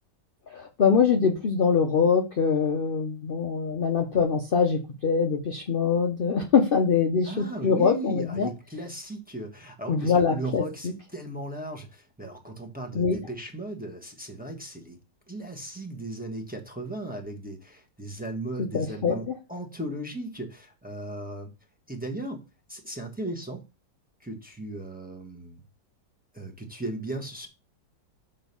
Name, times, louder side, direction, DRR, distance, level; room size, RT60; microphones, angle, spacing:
voice 1, 0.5-8.5 9.9-10.6 12.9-13.2 18.7-19.2, left 6 dB, 60° left, 0.5 m, -23 dB
voice 2, 7.2-15.0 15.3-21.5 21.9-23.6 24.2-25.6 26.3-27.5, right 1 dB, 5° right, 1.0 m, -36 dB
6.2 x 3.9 x 5.3 m
omnidirectional pair, 2.0 m